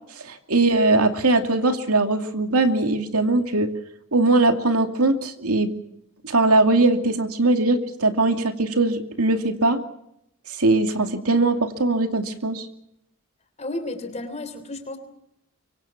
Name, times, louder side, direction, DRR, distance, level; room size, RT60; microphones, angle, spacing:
voice 1, 0.2-3.7 4.1-5.7 6.2-9.8 10.6-12.7, right 2 dB, 90° right, 6 dB, 2.6 m, -20 dB
voice 2, 13.6-15.0, left 2 dB, 30° left, 9 dB, 3.4 m, -32 dB
25.0 x 24.0 x 6.0 m, 0.79 s
head